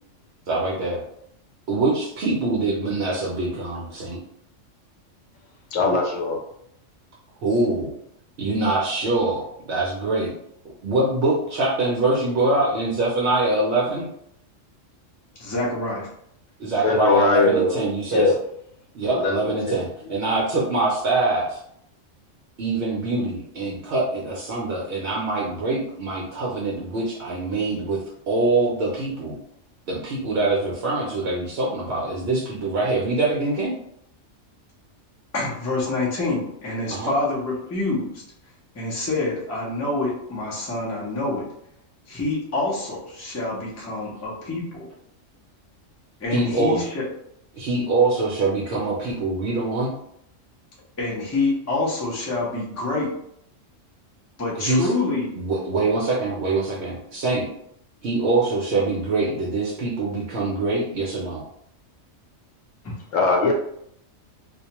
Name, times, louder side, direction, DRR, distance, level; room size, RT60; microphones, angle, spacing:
voice 1, 0.5-1.0 1.7-4.2 7.4-7.9 8.4-10.3 10.8-14.1 16.6-18.3 18.9-21.6 22.6-28.0 28.3-29.4 29.9-33.7 36.9-37.1 46.3-46.8 47.5-49.9 54.6-54.9 55.4-57.5 58.0-61.4, right 2 dB, 65° right, -5 dB, 0.8 m, -24 dB
voice 2, 5.7-6.4 16.6-18.4 19.1-20.2 63.1-63.5, left 3 dB, 80° left, 1 dB, 1.0 m, -22 dB
voice 3, 15.4-16.1 35.3-38.2 38.7-41.5 42.1-44.9 46.2-47.0 51.0-53.1 54.4-55.3 62.8-62.9, left 2 dB, 20° left, -5 dB, 0.4 m, -26 dB
2.3 x 2.2 x 2.8 m, 0.73 s
omnidirectional pair, 1.3 m